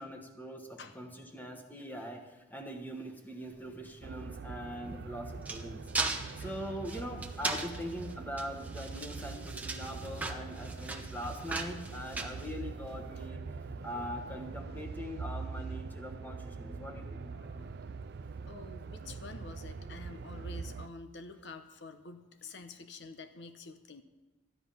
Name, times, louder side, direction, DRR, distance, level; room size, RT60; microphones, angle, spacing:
voice 1, 0.0-5.8 6.4-13.4 13.8-17.5 19.8-20.0 22.6-22.7, equal, 10° left, 4 dB, 1.4 m, -42 dB
sound 1, 3.4-17.6, equal, 80° left, 4.5 m, -55 dB
sound 2, 4.0-20.9, right 4 dB, 55° right, 0.4 m, -43 dB
sound 3, 4.9-13.1, right 3 dB, 10° right, 0.9 m, -39 dB
voice 2, 18.5-24.0, left 3 dB, 65° left, 8 dB, 0.9 m, -48 dB
13.0 x 9.9 x 5.7 m, 1.1 s
head